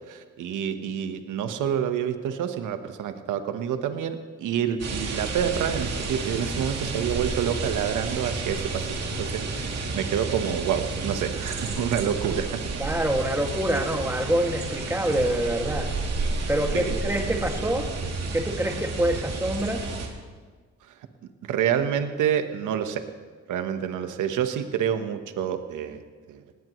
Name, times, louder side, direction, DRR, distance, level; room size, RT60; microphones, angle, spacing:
voice 1, 0.1-12.6 16.7-16.9 20.8-21.0 21.4-23.0 23.5-26.0 26.3-26.4, right 9 dB, 80° right, 8 dB, 1.2 m, -28 dB
sound 1, 4.8-20.1, right 3 dB, 60° right, 2.8 m, -31 dB
voice 2, 12.8-15.9 16.5-17.9 18.3-19.8, right 1 dB, 10° right, 2 dB, 2.2 m, -26 dB
19.0 x 18.0 x 3.2 m, 1.5 s
cardioid pair, 90°, 30 cm